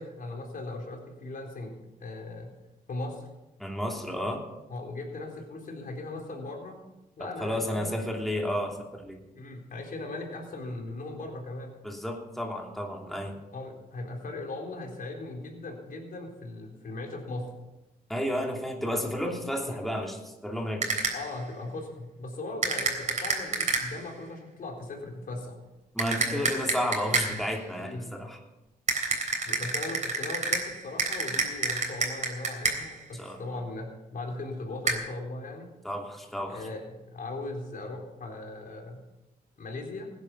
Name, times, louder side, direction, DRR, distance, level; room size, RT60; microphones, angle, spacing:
voice 1, 0.0-1.8 2.0-2.5 2.9-3.3 4.7-6.8 7.2-8.0 9.3-11.7 13.5-17.5 19.6-19.8 21.1-25.6 26.3-26.5 27.8-28.1 29.4-35.7 36.5-39.0 39.6-40.1, left 2 dB, 60° left, 1 dB, 3.9 m, -38 dB
voice 2, 3.6-4.4 7.2-9.2 11.8-13.4 18.1-20.9 25.9-28.4 33.2-33.4 35.8-36.6, equal, ahead, 0 dB, 2.9 m, -32 dB
sound 1, 20.8-21.4 22.6-24.1 26.0-27.5 28.9-33.0 34.9-35.0, right 3 dB, 45° right, 3.6 m, -29 dB
16.0 x 10.5 x 5.5 m, 1.0 s
cardioid pair, 70°, 16 cm